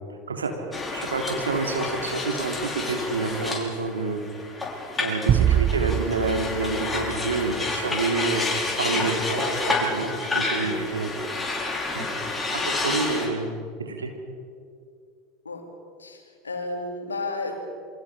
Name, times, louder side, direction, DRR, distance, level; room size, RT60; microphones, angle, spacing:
sound 1, 0.7-13.3, left 3 dB, 15° left, 5.3 m, -29 dB
voice 1, 0.9-4.2 5.0-11.1 11.9-12.0 12.6-13.5 13.8-14.1, right 3 dB, 80° right, 3 dB, 3.2 m, -28 dB
sound 2, 5.3-7.8, right 10 dB, 40° right, 0.7 m, -24 dB
voice 2, 10.5-10.9 11.9-12.5 15.4-15.6 16.0-17.8, left 2 dB, 85° left, 3 dB, 3.2 m, -34 dB
28.0 x 24.5 x 5.1 m, 2.2 s
figure-of-eight pair, 75°, 0 cm